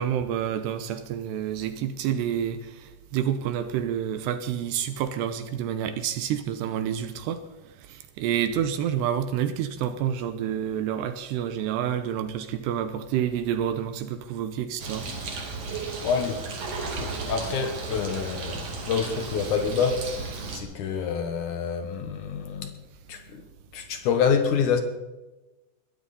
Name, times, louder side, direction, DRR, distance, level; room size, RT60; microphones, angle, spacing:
voice 1, 0.0-2.6 3.1-7.4 7.9-15.1, right 9 dB, 80° right, 2.8 m, -28 dB
Bird, 14.8-20.6, right 4 dB, 45° right, 3.0 m, -34 dB
voice 2, 16.0-16.5 17.0-20.1 20.5-22.7 23.1-23.4 23.7-24.8, left 6 dB, 65° left, 2.1 m, -27 dB
21.5 x 15.0 x 4.2 m
omnidirectional pair, 5.3 m